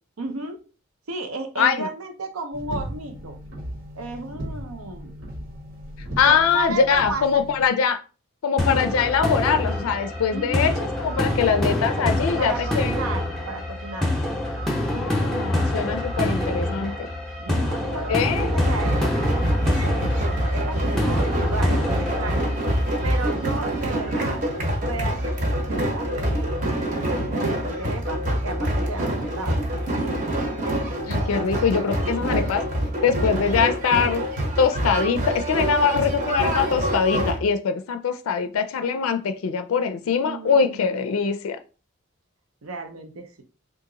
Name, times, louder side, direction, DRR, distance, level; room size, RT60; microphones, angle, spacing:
voice 1, 0.2-0.6 1.1-3.4 3.9-5.1 6.2-7.4 10.3-10.8 11.1-11.4 12.4-14.2 17.4-22.4 23.0-24.4 24.8-26.5 27.3-29.6 32.0-32.2 40.2-41.0 42.6-43.3, right 3 dB, 90° right, 5 dB, 0.6 m, -34 dB
voice 2, 1.6-1.9 6.2-8.0 8.4-12.9 14.8-17.1 18.1-18.6 31.1-32.7 33.0-34.2 34.6-41.6, left 6 dB, 85° left, 8 dB, 0.4 m, -23 dB
sound 1, 2.5-7.7, equal, 75° right, 1.2 m, -36 dB
sound 2, 8.6-23.5, left 1 dB, ahead, 0.6 m, -26 dB
sound 3, 18.4-37.4, right 1 dB, 35° right, 0.7 m, -25 dB
2.8 x 2.5 x 3.8 m, 0.35 s
head